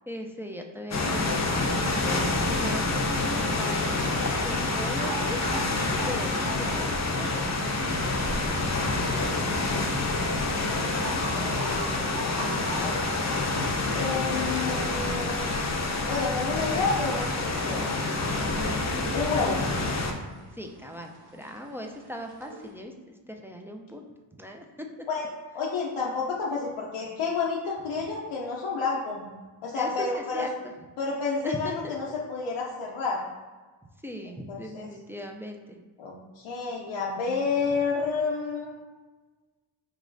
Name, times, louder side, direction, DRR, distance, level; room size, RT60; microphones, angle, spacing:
voice 1, 0.1-3.8 4.4-5.6 6.1-7.4 7.6-7.7 18.6-19.2 20.6-22.9 23.3-24.1 24.4-24.6 29.7-30.5 31.4-32.2 34.0-35.8, equal, 5° right, 2 dB, 0.4 m, -39 dB
sound 1, 0.9-20.1, left 2 dB, 35° left, 0.6 m, -27 dB
sound 2, 4.6-22.7, right 2 dB, 50° right, 1.0 m, -43 dB
voice 2, 11.3-11.9 12.3-13.0 13.9-15.5 16.1-17.8 19.1-19.6 25.1-25.3 25.5-29.3 29.6-30.5 31.0-33.2 34.5-34.9 36.0-38.7, left 4 dB, 85° left, -2 dB, 0.7 m, -30 dB
4.6 x 3.1 x 2.6 m, 1.3 s
cardioid pair, 55°, 48 cm